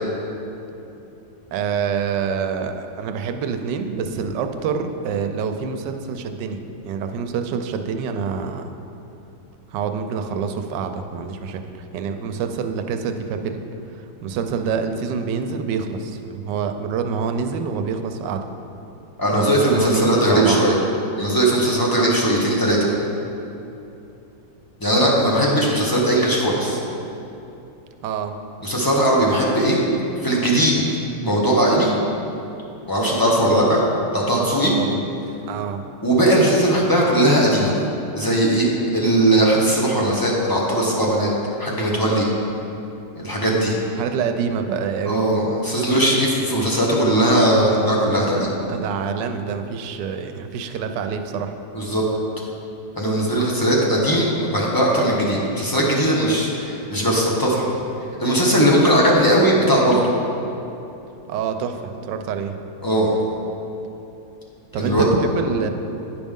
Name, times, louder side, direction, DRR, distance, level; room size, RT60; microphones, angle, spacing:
voice 1, 1.5-8.7 9.7-13.6 14.2-18.5 19.3-20.6 28.0-28.3 33.4-33.5 34.3-35.0 35.5-35.8 44.0-45.2 48.7-51.5 61.3-62.5 64.7-65.7, right 6 dB, 85° right, 7 dB, 1.2 m, -26 dB
voice 2, 19.2-20.7 21.2-22.8 24.8-26.8 28.6-29.8 30.2-30.8 31.2-31.9 32.9-33.8 34.1-34.7 36.0-37.7 38.2-41.3 41.6-42.2 43.2-43.7 45.1-48.5 51.7-52.0 53.0-57.7 58.2-60.0 62.8-63.1 64.8-65.1, right 1 dB, 20° left, -4 dB, 0.7 m, -18 dB
10.5 x 5.1 x 3.6 m, 2.9 s
omnidirectional pair, 1.9 m